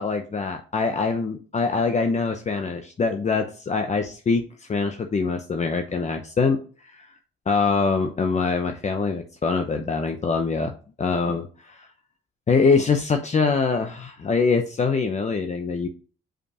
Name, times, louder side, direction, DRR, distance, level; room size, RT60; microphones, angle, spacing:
voice 1, 0.0-7.1 7.5-10.7 11.0-11.5 11.7-11.9 12.5-15.9, left 4 dB, 35° left, 5 dB, 0.9 m, -24 dB
5.2 x 5.2 x 4.9 m, 0.39 s
cardioid pair, 90°, 20 cm